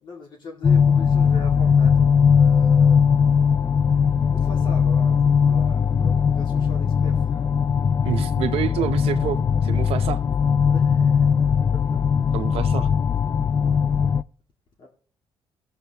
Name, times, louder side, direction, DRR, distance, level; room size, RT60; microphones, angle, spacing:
voice 1, 0.0-3.0 4.3-7.5 10.6-11.3 11.7-12.3 14.8-14.9, left 3 dB, 50° left, 2.0 m, -41 dB
sound 1, 0.6-14.2, left 6 dB, 30° left, 0.4 m, -19 dB
voice 2, 8.0-10.2 12.3-12.9, right 10 dB, 75° right, 0.7 m, -28 dB
18.0 x 7.6 x 2.9 m
cardioid pair, 105°, 10 cm